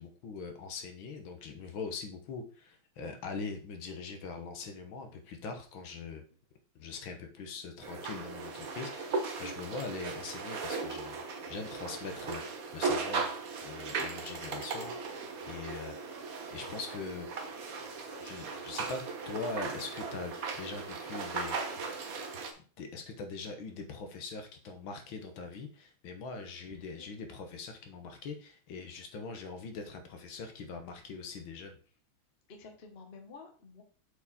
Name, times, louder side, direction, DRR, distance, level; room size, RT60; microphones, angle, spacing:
voice 1, 0.0-6.2 6.8-13.3 13.6-16.0 16.5-17.3 18.2-21.9 22.8-31.8, left 4 dB, 70° left, 6 dB, 1.7 m, -42 dB
sound 1, 7.8-22.5, right 4 dB, 50° right, 1.2 m, -37 dB
voice 2, 26.7-27.1 32.5-33.8, left 4 dB, 35° left, 4 dB, 1.1 m, -51 dB
7.2 x 4.6 x 4.1 m, 0.40 s
omnidirectional pair, 2.3 m